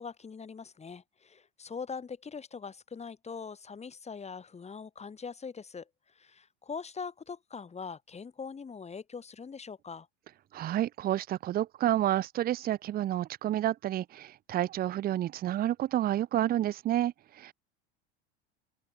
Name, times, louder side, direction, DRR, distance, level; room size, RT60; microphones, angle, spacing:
voice 1, 0.0-5.9 6.1-10.1, left 5 dB, 20° left, 6.1 m, -42 dB
voice 2, 10.5-17.5, right 13 dB, 30° right, 0.6 m, -30 dB
open air
supercardioid pair, 105°, 29 cm